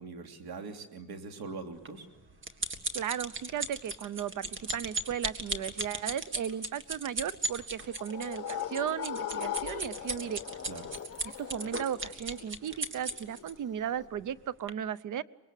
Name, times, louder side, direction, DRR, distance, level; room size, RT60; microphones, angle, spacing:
voice 1, 0.0-2.1 10.7-10.9, right 4 dB, 85° right, 5 dB, 3.1 m, -42 dB
sound 1, 1.9-13.5 14.2-14.3 14.7-14.8, right 2 dB, 35° right, 2.0 m, -36 dB
voice 2, 2.9-10.4 11.4-15.2, right 9 dB, 55° right, 19 dB, 0.8 m, -35 dB
sound 2, 7.2-14.1, left 10 dB, 40° left, 1.4 m, -40 dB
25.0 x 22.0 x 8.3 m, 1.1 s
cardioid pair, 130°, 36 cm